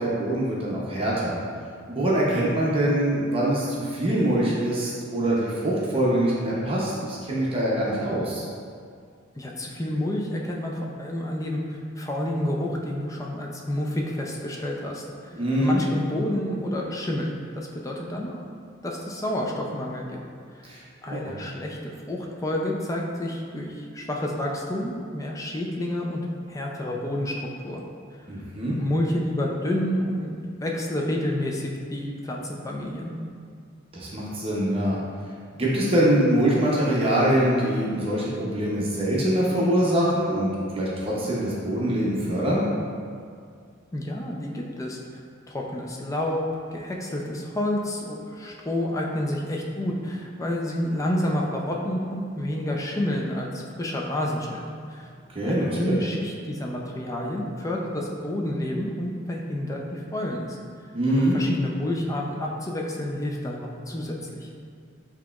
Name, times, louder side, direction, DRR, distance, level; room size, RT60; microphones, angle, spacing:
voice 1, 0.0-1.4 1.9-8.4 15.3-15.8 20.6-20.8 21.1-21.4 28.3-28.8 33.9-35.0 35.5-42.7 55.3-55.9 60.9-61.4, right 1 dB, 30° right, -6 dB, 0.7 m, -24 dB
voice 2, 9.4-18.4 18.8-20.2 20.5-20.7 21.0-27.8 28.6-33.1 43.9-45.2 45.5-54.6 54.9-55.1 55.4-60.6 61.2-64.5, left 1 dB, 15° left, -1 dB, 0.4 m, -29 dB
7.1 x 2.9 x 2.4 m, 2.2 s
head